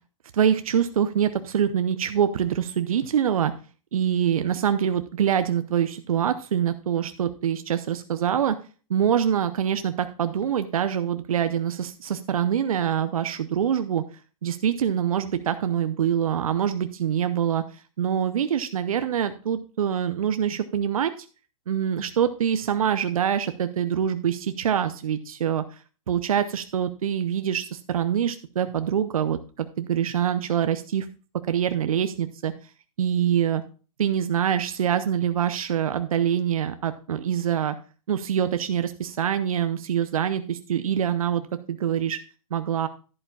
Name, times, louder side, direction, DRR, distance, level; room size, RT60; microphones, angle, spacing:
voice 1, 0.3-3.5 3.9-8.6 8.9-14.0 14.4-21.3 21.7-31.1 31.5-32.5 33.0-33.6 34.0-37.8 38.1-42.2 42.5-42.9, right 9 dB, 80° right, 10 dB, 0.7 m, -25 dB
11.0 x 11.0 x 2.3 m, 0.36 s
hypercardioid pair, 115°, 18 cm